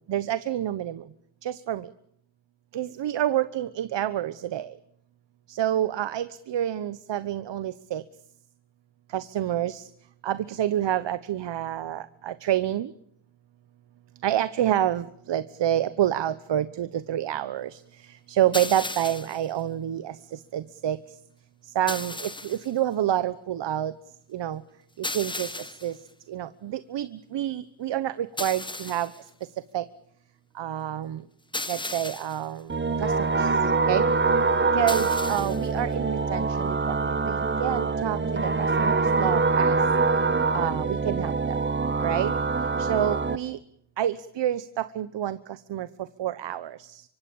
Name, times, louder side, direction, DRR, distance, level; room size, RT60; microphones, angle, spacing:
voice 1, 0.1-1.0 1.4-1.9 2.7-4.7 5.5-8.0 9.1-9.8 10.2-12.9 14.2-17.8 18.3-21.0 21.7-23.9 24.3-24.6 25.0-25.5 25.8-25.9 26.3-29.1 29.7-29.8 30.6-31.2 31.7-32.7 33.0-33.5 33.9-34.1 34.7-39.8 40.5-41.6 42.0-42.3 42.8-43.6 44.0-45.9 46.2-47.0, right 11 dB, 65° right, 14 dB, 1.1 m, -28 dB
sound 1, 18.5-19.5 21.9-22.7 25.0-26.0 28.4-29.2 31.5-32.5 34.9-35.7, left 2 dB, 10° left, 1.3 m, -35 dB
sound 2, 32.7-43.4, right 4 dB, 25° right, 1.7 m, -24 dB
25.0 x 24.0 x 7.1 m, 0.69 s
cardioid pair, 75°, 47 cm